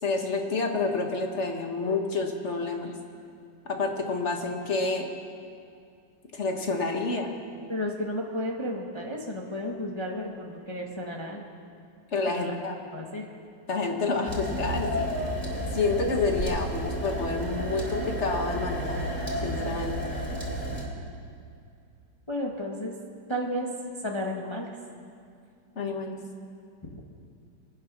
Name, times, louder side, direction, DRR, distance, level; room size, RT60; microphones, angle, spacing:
voice 1, 0.0-2.9 3.6-5.1 6.3-7.3 12.1-12.7 13.7-15.1 15.7-19.0 19.4-20.0 25.7-26.2, left 3 dB, 40° left, 3 dB, 1.6 m, -28 dB
voice 2, 7.7-11.5 12.3-12.7 12.9-13.2 22.3-22.9 23.3-23.7 24.0-24.7 26.8-27.0, left 1 dB, 15° left, -1 dB, 1.1 m, -33 dB
sound 1, 14.3-20.8, equal, 20° right, 3.0 m, -31 dB
23.0 x 9.6 x 6.0 m, 2.4 s
omnidirectional pair, 2.1 m